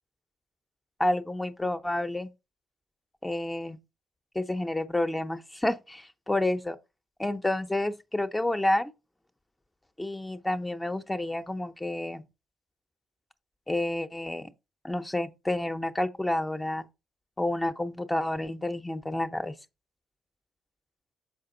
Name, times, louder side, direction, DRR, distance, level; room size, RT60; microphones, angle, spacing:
voice 1, 1.0-2.3 3.2-3.8 4.3-6.8 7.2-8.9 10.0-12.2 13.7-14.5 14.8-16.9 17.4-19.6, left 1 dB, 10° left, 0.7 m, -29 dB
6.6 x 5.0 x 3.8 m
cardioid pair, 90°, 0 cm